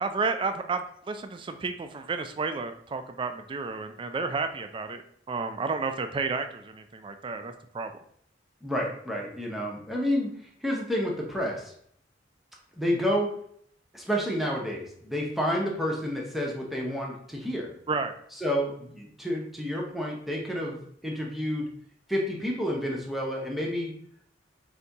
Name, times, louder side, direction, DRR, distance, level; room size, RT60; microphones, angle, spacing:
voice 1, 0.0-5.0 5.3-7.9 17.9-18.1, right 4 dB, 25° right, 8 dB, 0.3 m, -31 dB
voice 2, 8.6-10.3 10.6-11.7 12.8-13.3 13.9-17.7 18.4-21.7 22.1-23.9, equal, ahead, -2 dB, 0.7 m, -29 dB
4.0 x 2.8 x 3.4 m, 0.66 s
head